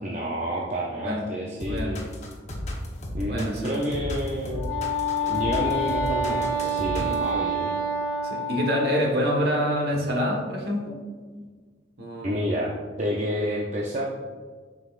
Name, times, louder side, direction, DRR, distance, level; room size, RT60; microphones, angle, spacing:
voice 1, 0.0-2.1 3.1-4.7 5.2-7.8 12.2-12.7 13.0-14.1, equal, 35° right, -2 dB, 0.6 m, -29 dB
sound 1, 1.6-7.3, left 1 dB, 35° left, 1.0 m, -34 dB
voice 2, 1.7-2.0 3.3-3.8 7.0-7.2 8.2-11.0 12.0-12.4, equal, 55° right, 0 dB, 1.3 m, -26 dB
Wind instrument woodwind instrument, 4.5-9.2, equal, 70° left, 1.4 m, -27 dB
8.1 x 5.6 x 2.5 m, 1.5 s
head